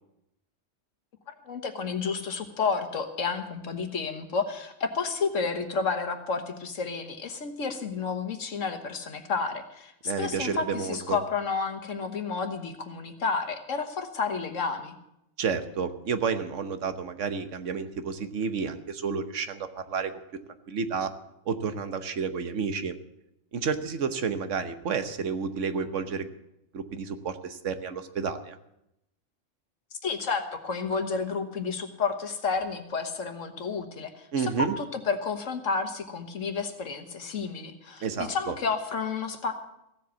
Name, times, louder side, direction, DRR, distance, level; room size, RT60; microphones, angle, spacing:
voice 1, 1.3-15.0 30.0-39.5, left 5 dB, 75° left, 7 dB, 1.7 m, -31 dB
voice 2, 10.0-11.2 15.4-20.1 20.7-21.1 21.5-22.9 23.5-26.3 26.7-28.6 34.3-34.7 38.0-38.5, right 5 dB, 75° right, 9 dB, 1.3 m, -30 dB
16.0 x 7.8 x 8.2 m, 0.83 s
omnidirectional pair, 1.3 m